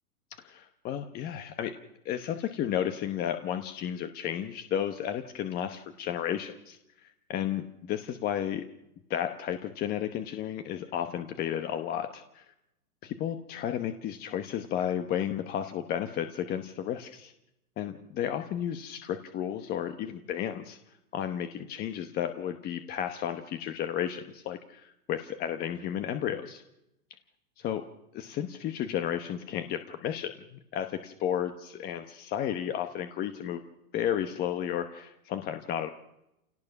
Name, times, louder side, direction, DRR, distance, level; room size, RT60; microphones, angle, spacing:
voice 1, 0.4-1.7 2.0-8.7 9.1-12.4 13.0-17.3 17.8-20.8 21.1-26.6 27.6-27.8 28.1-33.6 33.9-35.9, left 10 dB, 20° left, 8 dB, 1.0 m, -33 dB
28.0 x 18.0 x 5.9 m, 0.85 s
hypercardioid pair, 140°, 46 cm